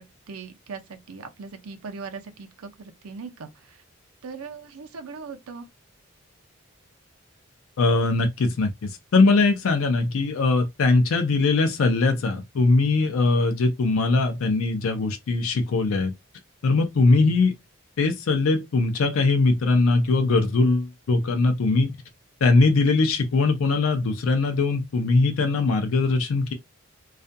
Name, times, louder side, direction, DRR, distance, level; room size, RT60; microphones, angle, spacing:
voice 1, 0.0-3.8 4.2-5.7, right 5 dB, 90° right, 0.5 m, -39 dB
voice 2, 7.8-16.1 16.6-17.5 18.0-21.9 22.4-26.5, left 3 dB, 75° left, 0.4 m, -21 dB
2.3 x 2.1 x 2.6 m
head